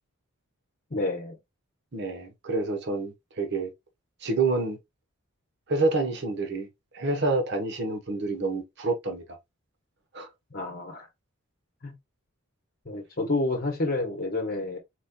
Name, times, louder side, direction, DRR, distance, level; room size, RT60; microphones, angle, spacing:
voice 1, 0.9-1.4 10.5-11.1 11.8-11.9 12.8-14.8, left 2 dB, 40° left, 1.0 m, -29 dB
voice 2, 1.9-3.7 4.2-4.8 5.7-6.7 6.9-9.2 10.1-10.3, right 3 dB, 50° right, 1.1 m, -28 dB
4.4 x 4.1 x 2.2 m
head